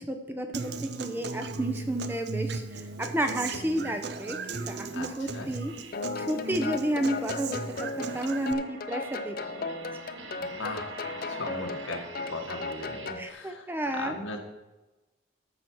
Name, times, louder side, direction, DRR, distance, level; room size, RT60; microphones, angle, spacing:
voice 1, 0.0-4.4 4.6-5.7 6.2-9.8 13.2-14.2, right 1 dB, 10° right, 6 dB, 0.6 m, -31 dB
Human voice / Acoustic guitar, 0.5-8.5, right 4 dB, 55° right, 0.6 m, -37 dB
sound 1, 3.8-3.9 4.4-13.1, right 1 dB, 75° right, 1.4 m, -44 dB
voice 2, 4.9-5.5 10.4-11.0 11.3-13.7 13.9-14.4, left 2 dB, 75° left, 3 dB, 1.5 m, -38 dB
sound 2, 5.9-13.3, left 3 dB, 45° left, 0.5 m, -36 dB
13.5 x 6.2 x 4.6 m, 1.1 s
head